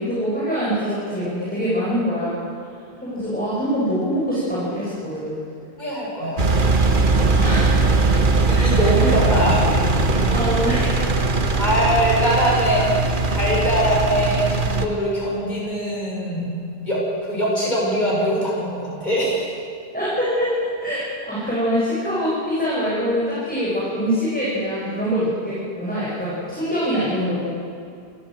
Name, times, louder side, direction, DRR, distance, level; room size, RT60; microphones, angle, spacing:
voice 1, 0.0-2.3 3.0-5.4 7.3-8.0 8.5-8.9 10.3-11.0 19.9-27.5, equal, 10° left, -9 dB, 7.1 m, -24 dB
voice 2, 5.8-6.8 8.5-9.7 11.0-11.1 11.6-12.9 13.3-19.5, equal, 45° left, -5 dB, 6.6 m, -22 dB
Engine, 6.4-14.9, right 3 dB, 55° right, 1.6 m, -19 dB
27.5 x 15.5 x 7.9 m, 2.4 s
omnidirectional pair, 1.1 m